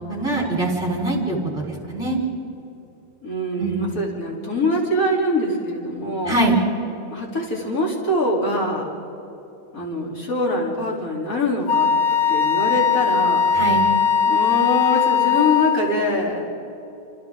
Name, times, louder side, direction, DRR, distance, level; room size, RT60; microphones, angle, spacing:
voice 1, 0.1-2.2 3.6-4.0 6.2-6.6 13.5-13.9, right 2 dB, ahead, -1 dB, 4.1 m, -23 dB
voice 2, 3.2-6.4 7.1-8.9 9.7-11.9 12.3-13.4 14.2-16.4, left 1 dB, 40° left, -3 dB, 3.9 m, -23 dB
Wind instrument woodwind instrument, 11.7-15.9, left 6 dB, 65° left, 1.6 m, -19 dB
28.5 x 28.0 x 3.8 m, 2.8 s
omnidirectional pair, 2.3 m